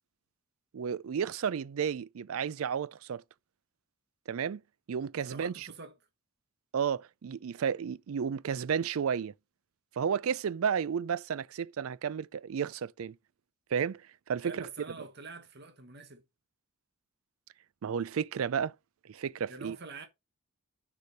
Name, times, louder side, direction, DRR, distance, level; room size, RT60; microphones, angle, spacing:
voice 1, 0.7-3.2 4.3-4.6 4.9-5.7 6.7-9.3 10.0-13.2 13.7-14.0 14.3-14.7 17.8-18.7 19.1-19.8, right 7 dB, 70° right, 0.4 m, -32 dB
voice 2, 5.2-5.9 14.4-16.2 19.5-20.1, right 3 dB, 50° right, 1.2 m, -46 dB
6.5 x 5.0 x 5.5 m
head